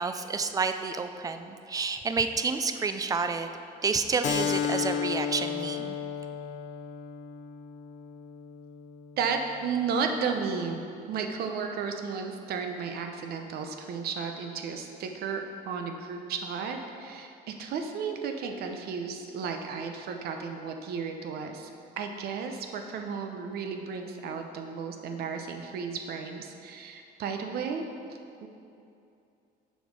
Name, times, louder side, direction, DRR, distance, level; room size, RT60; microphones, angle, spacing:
voice 1, 0.0-3.5 3.8-6.0, right 4 dB, 20° right, 8 dB, 0.4 m, -29 dB
Keyboard (musical), 4.2-9.4, left 7 dB, 45° left, 0.5 m, -33 dB
voice 2, 9.2-21.7 22.0-27.8 28.4-28.5, right 5 dB, 65° right, 4 dB, 0.7 m, -33 dB
6.7 x 4.4 x 4.7 m, 2.6 s
cardioid pair, 110°, 17 cm